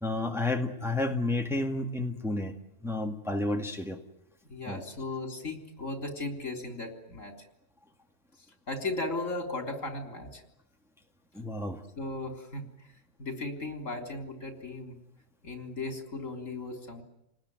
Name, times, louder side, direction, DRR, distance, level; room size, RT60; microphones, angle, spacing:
voice 1, 0.0-2.5 2.8-4.0 4.7-4.8 11.3-11.8, left 2 dB, ahead, 2 dB, 1.9 m, -31 dB
voice 2, 4.5-7.3 8.7-10.4 12.0-12.7 13.2-15.0 15.4-17.0, left 2 dB, 70° left, 4 dB, 3.8 m, -36 dB
28.5 x 19.5 x 9.5 m, 0.89 s
omnidirectional pair, 1.4 m